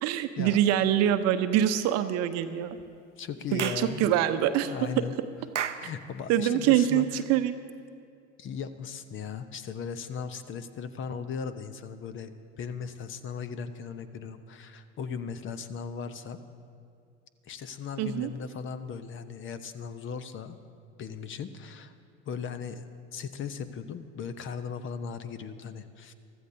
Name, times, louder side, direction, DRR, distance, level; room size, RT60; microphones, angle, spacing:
voice 1, 0.0-2.8 3.5-5.0 6.3-7.6 18.0-18.3, right 11 dB, 45° right, 10 dB, 0.8 m, -25 dB
voice 2, 3.2-4.1 4.6-5.1 5.8-7.0 8.4-12.3 12.6-16.4 17.5-20.6 21.0-21.9 22.3-26.1, left 6 dB, 35° left, 11 dB, 0.8 m, -37 dB
Clapping / Chirp tweet, 3.6-3.9 5.5-5.9, right 9 dB, 85° right, 0.6 m, -32 dB
23.5 x 14.0 x 2.7 m, 2.4 s
figure-of-eight pair, 70°, 35 cm